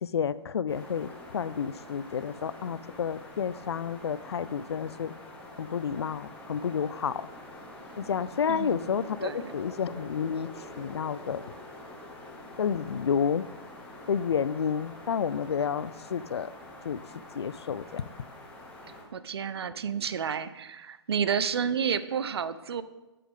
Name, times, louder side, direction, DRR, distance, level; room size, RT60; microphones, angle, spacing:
voice 1, 0.0-5.1 5.6-7.3 8.0-10.5 10.8-11.4 12.6-13.5 14.1-16.5 16.8-17.0 17.3-18.0, left 7 dB, 65° left, 18 dB, 0.4 m, -30 dB
sound 1, 0.7-19.0, left 1 dB, 10° left, 1.8 m, -46 dB
voice 2, 8.5-8.9 9.2-9.5 19.1-22.8, right 7 dB, 60° right, 14 dB, 0.6 m, -30 dB
8.6 x 7.0 x 3.6 m, 1.0 s
figure-of-eight pair, 120°, 15 cm